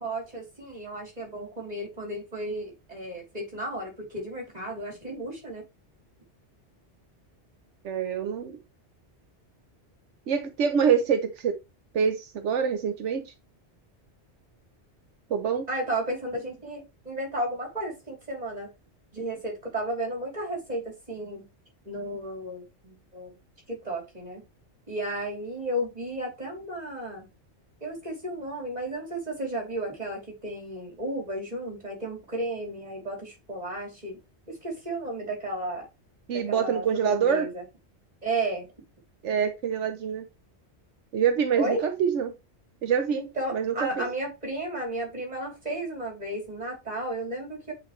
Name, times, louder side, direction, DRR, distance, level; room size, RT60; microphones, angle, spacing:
voice 1, 0.0-5.6 15.7-18.7 19.1-21.5 21.8-23.3 23.7-24.4 24.9-27.3 27.8-34.2 34.5-35.9 36.3-37.6 38.2-38.7 41.6-41.8 43.1-47.7, right 1 dB, 35° right, 3.2 m, -33 dB
voice 2, 7.8-8.6 10.3-11.6 11.9-13.3 15.3-15.7 36.3-37.5 39.2-40.3 41.1-42.3 42.8-43.2 43.5-44.1, right 7 dB, 85° right, 1.1 m, -25 dB
8.4 x 4.5 x 3.1 m
omnidirectional pair, 1.2 m